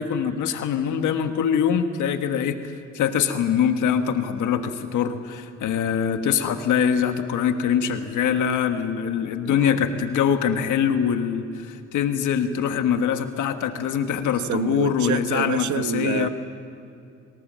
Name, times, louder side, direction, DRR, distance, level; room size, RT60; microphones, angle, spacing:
voice 1, 0.0-16.3, left 8 dB, 80° left, 7 dB, 1.5 m, -23 dB
voice 2, 9.4-9.9 14.5-16.3, right 10 dB, 70° right, 11 dB, 1.1 m, -28 dB
26.0 x 18.5 x 7.5 m, 2.5 s
cardioid pair, 90°, 30 cm